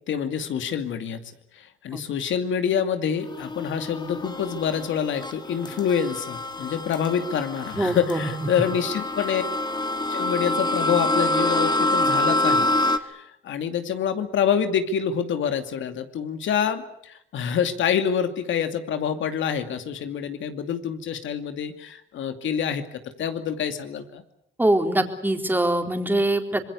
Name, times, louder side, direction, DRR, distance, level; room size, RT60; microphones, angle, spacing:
voice 1, 0.1-1.2 1.6-9.4 10.1-22.8 23.2-24.2, left 8 dB, 75° left, 8 dB, 2.6 m, -26 dB
sound 1, 3.2-13.0, left 1 dB, 20° left, 2.0 m, -26 dB
voice 2, 7.7-8.3 24.6-26.6, right 1 dB, 10° right, 4 dB, 3.8 m, -23 dB
26.0 x 21.5 x 8.4 m, 0.73 s
cardioid pair, 90°, 20 cm